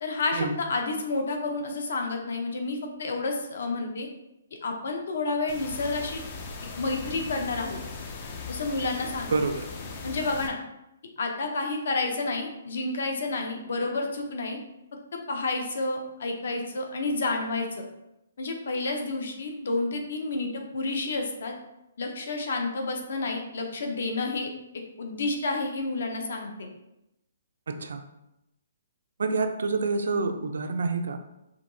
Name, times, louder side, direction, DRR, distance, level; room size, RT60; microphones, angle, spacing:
voice 1, 0.0-4.1 4.6-6.2 6.8-7.8 8.5-9.3 10.0-10.6 11.2-14.6 15.3-17.8 18.4-21.5 22.0-24.5 25.0-26.7, left 3 dB, 55° left, 3 dB, 0.7 m, -30 dB
sound 1, 5.5-10.5, left 4 dB, 25° left, 0.4 m, -39 dB
voice 2, 9.3-9.6 27.7-28.0 29.2-31.2, right 3 dB, 70° right, 7 dB, 0.4 m, -27 dB
5.0 x 2.8 x 2.7 m, 0.87 s
hypercardioid pair, 180°, 0 cm